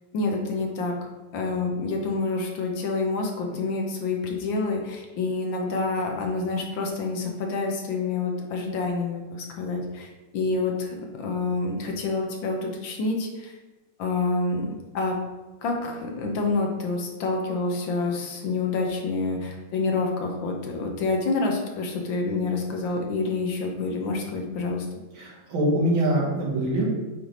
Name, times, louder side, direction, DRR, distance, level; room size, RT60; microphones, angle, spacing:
voice 1, 0.1-0.9 1.3-13.5 14.0-14.7 14.9-15.2 15.6-24.9, left 3 dB, 80° left, 1 dB, 1.7 m, -27 dB
voice 2, 25.1-26.9, right 1 dB, 85° right, -3 dB, 2.3 m, -24 dB
8.5 x 3.3 x 3.8 m, 1.2 s
omnidirectional pair, 2.1 m